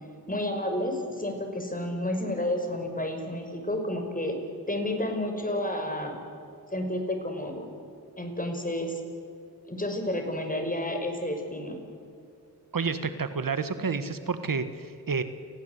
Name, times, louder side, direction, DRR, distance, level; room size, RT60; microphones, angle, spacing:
voice 1, 0.3-4.4 4.7-6.2 6.7-7.7 8.2-9.0 9.7-11.8, left 1 dB, 20° left, 4 dB, 5.6 m, -30 dB
voice 2, 12.7-15.2, right 5 dB, 60° right, 10 dB, 1.6 m, -29 dB
29.5 x 19.5 x 8.2 m, 2.5 s
cardioid pair, 60°, 37 cm